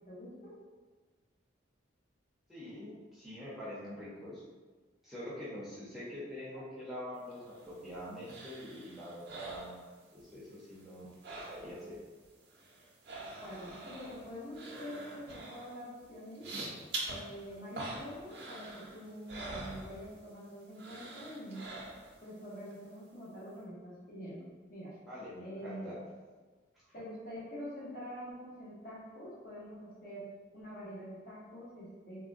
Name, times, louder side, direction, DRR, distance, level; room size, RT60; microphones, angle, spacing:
voice 1, 0.1-0.6 13.4-16.5 17.1-21.6 22.2-24.9 25.4-25.9 26.9-30.3 30.5-32.2, equal, 50° left, -7 dB, 0.9 m, -46 dB
voice 2, 2.5-4.4 5.0-12.0 25.1-26.0 26.9-27.0, left 1 dB, ahead, -10 dB, 0.7 m, -45 dB
sound 1, 7.3-10.4 10.6-12.0 12.2-20.4 20.7-22.3 22.7-22.8, right 2 dB, 55° right, 0.5 m, -45 dB
3.5 x 2.1 x 2.5 m, 1.4 s
head